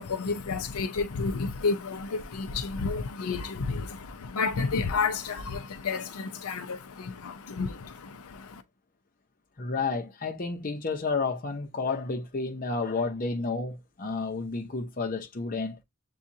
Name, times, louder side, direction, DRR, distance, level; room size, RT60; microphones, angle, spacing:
voice 1, 0.0-8.6, left 4 dB, 90° left, 0.6 m, -31 dB
voice 2, 9.6-15.8, left 4 dB, 40° left, 0.7 m, -31 dB
7.2 x 2.4 x 2.7 m
head